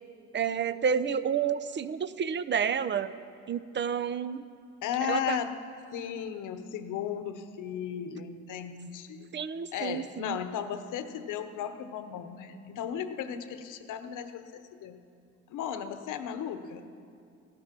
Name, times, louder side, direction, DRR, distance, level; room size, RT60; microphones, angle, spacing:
voice 1, 0.3-3.1 3.5-4.4 5.1-5.4 9.3-10.4, right 7 dB, 35° right, 14 dB, 0.6 m, -30 dB
voice 2, 4.8-5.6 5.9-9.3 9.7-15.0 15.5-16.9, left 9 dB, 85° left, 9 dB, 0.9 m, -35 dB
16.5 x 12.0 x 6.0 m, 2.5 s
cardioid pair, 90°, 30 cm